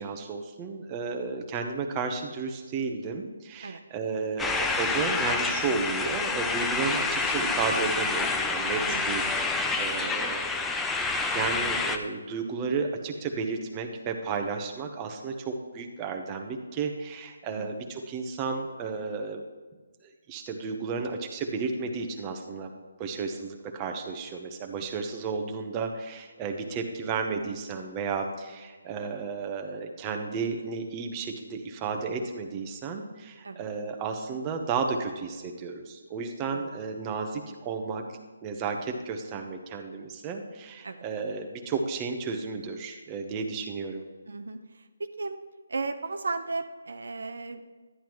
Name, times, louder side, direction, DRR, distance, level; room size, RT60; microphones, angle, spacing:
voice 1, 0.0-10.5 10.8-19.4 20.0-38.1 38.4-44.0, right 4 dB, 20° right, 4 dB, 0.9 m, -33 dB
sound 1, 4.4-12.0, left 3 dB, 5° left, 0.5 m, -28 dB
voice 2, 44.3-45.4 45.7-47.6, right 3 dB, 75° right, 9 dB, 0.7 m, -35 dB
11.0 x 10.0 x 3.1 m, 1.3 s
hypercardioid pair, 160°, 0 cm